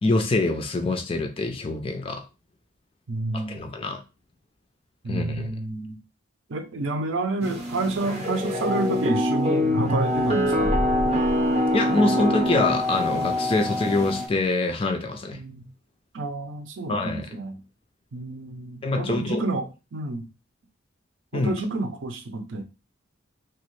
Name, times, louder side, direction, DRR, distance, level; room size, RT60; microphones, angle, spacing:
voice 1, 0.0-2.2 3.3-4.0 5.1-5.5 11.7-15.4 16.9-17.3 18.8-19.4 21.3-21.5, left 2 dB, 30° left, 0.4 m, -25 dB
voice 2, 3.1-3.6 5.0-6.0 6.5-10.7 15.3-15.7 16.1-17.6 18.1-20.3 21.3-22.6, right 2 dB, 70° right, 0.6 m, -29 dB
sound 1, 7.4-14.3, left 1 dB, 35° right, 0.6 m, -24 dB
2.9 x 2.4 x 3.1 m
head